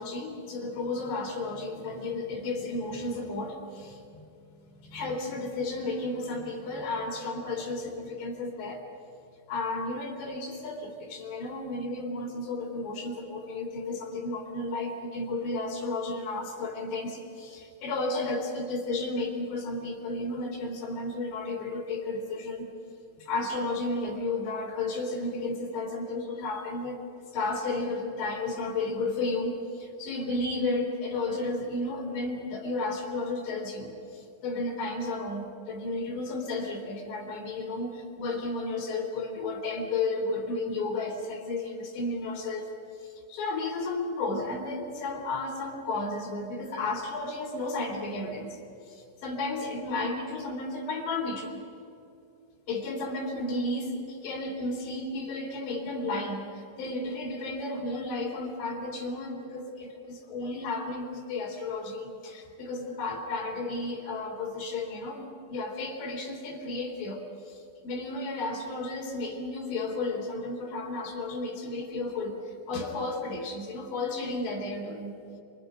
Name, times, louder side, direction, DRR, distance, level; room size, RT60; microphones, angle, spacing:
voice 1, 0.0-4.2 4.7-8.8 9.5-22.7 23.2-27.0 27.3-42.7 43.0-48.6 48.9-51.6 52.7-75.1, left 2 dB, 75° left, 1 dB, 5.3 m, -33 dB
28.5 x 26.0 x 5.2 m, 2.7 s
omnidirectional pair, 5.1 m